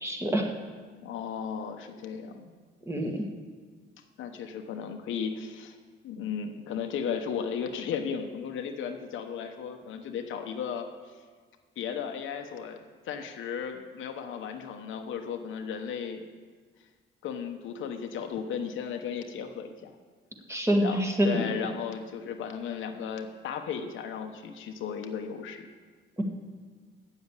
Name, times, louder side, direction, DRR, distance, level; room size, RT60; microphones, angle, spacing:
voice 1, 0.0-0.5 2.9-3.2 20.5-21.4 26.2-26.3, equal, 15° right, 2 dB, 1.6 m, -26 dB
voice 2, 1.0-2.5 2.9-3.3 4.2-5.8 6.0-10.9 11.8-16.3 17.2-19.9 20.8-25.7, left 7 dB, 80° left, 5 dB, 1.0 m, -35 dB
8.6 x 7.4 x 8.1 m, 1.5 s
cardioid pair, 90°, 20 cm